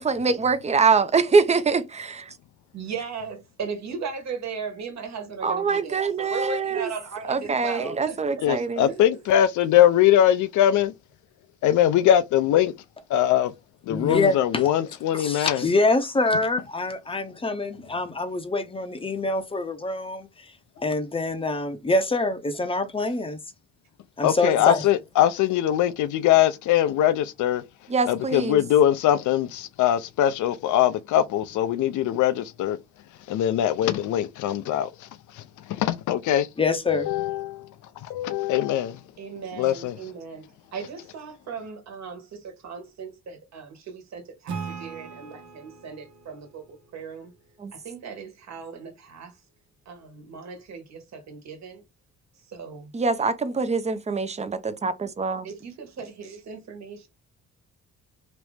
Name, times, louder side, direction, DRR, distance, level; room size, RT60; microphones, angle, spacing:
voice 1, 0.0-2.3 5.4-6.9 7.3-8.9 27.9-28.6 47.6-47.7 52.9-55.5, right 4 dB, 20° right, 0.5 m, -24 dB
voice 2, 2.7-8.4 8.9-9.0 39.2-47.3 47.7-49.4 49.8-51.8 52.5-52.9 55.4-57.1, right 5 dB, 65° right, 1.4 m, -37 dB
voice 3, 8.4-10.9 11.6-12.7 13.1-13.5 13.8-15.7 24.2-27.6 28.1-32.8 33.3-36.5 36.9-39.0 39.6-40.0, left 11 dB, 75° left, 0.5 m, -22 dB
voice 4, 13.9-14.6 15.1-23.4 24.2-24.8 36.6-37.1, left 2 dB, 20° left, 0.6 m, -25 dB
Acoustic guitar / Strum, 44.5-47.9, right 5 dB, 80° right, 1.2 m, -40 dB
3.0 x 2.6 x 3.3 m
cardioid pair, 90°, 30 cm